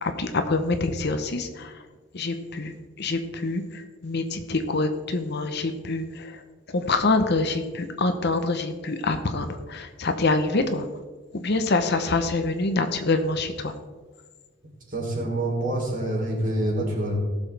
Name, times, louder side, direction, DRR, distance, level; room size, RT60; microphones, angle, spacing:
voice 1, 0.0-1.7 2.1-6.4 6.7-10.8 11.3-13.7, left 3 dB, 50° left, 7 dB, 0.9 m, -26 dB
voice 2, 14.9-17.2, right 1 dB, 40° right, -2 dB, 3.3 m, -26 dB
18.5 x 7.2 x 3.4 m, 1.4 s
head